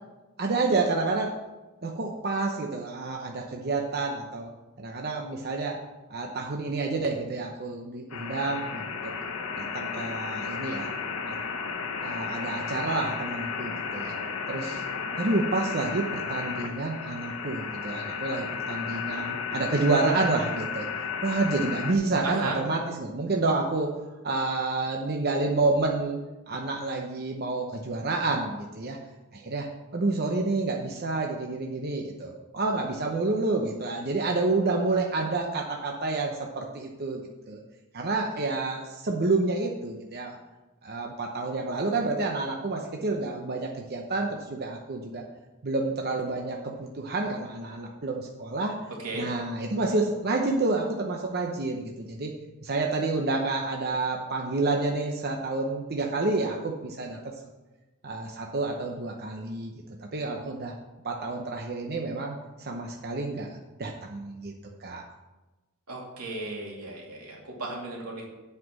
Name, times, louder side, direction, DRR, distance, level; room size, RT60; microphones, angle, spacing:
voice 1, 0.4-1.4 1.8-4.5 4.8-5.8 6.1-9.1 9.7-10.9 11.3-11.4 12.0-14.2 14.5-14.8 15.2-20.9 21.2-26.2 26.5-29.0 29.3-29.7 29.9-37.2 37.5-37.6 37.9-40.4 40.8-45.2 45.6-48.8 49.1-52.3 52.6-57.2 58.0-59.7 60.0-60.7 61.0-64.5 64.8-65.0, right 3 dB, 45° right, 1 dB, 0.8 m, -29 dB
sound 1, 8.1-21.9, left 5 dB, 85° left, 1.1 m, -33 dB
voice 2, 22.2-22.6 49.0-49.3 65.9-68.2, right 3 dB, 85° right, -2 dB, 2.5 m, -35 dB
7.9 x 5.9 x 7.1 m, 1.1 s
head